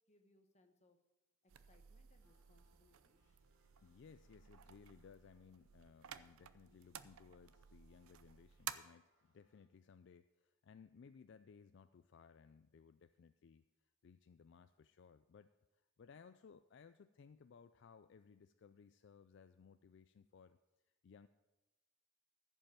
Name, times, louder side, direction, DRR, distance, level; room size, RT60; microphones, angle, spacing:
voice 1, 0.1-1.0 1.4-3.5, left 2 dB, 35° left, 6 dB, 1.1 m, -73 dB
sound 1, 1.5-8.7, right 10 dB, 90° right, 0.6 m, -54 dB
sound 2, 2.2-9.7, right 1 dB, 60° right, 3.0 m, -81 dB
voice 2, 3.8-20.6 20.8-21.3, left 6 dB, 60° left, 11 dB, 0.3 m, -62 dB
14.5 x 5.5 x 7.4 m, 1.1 s
head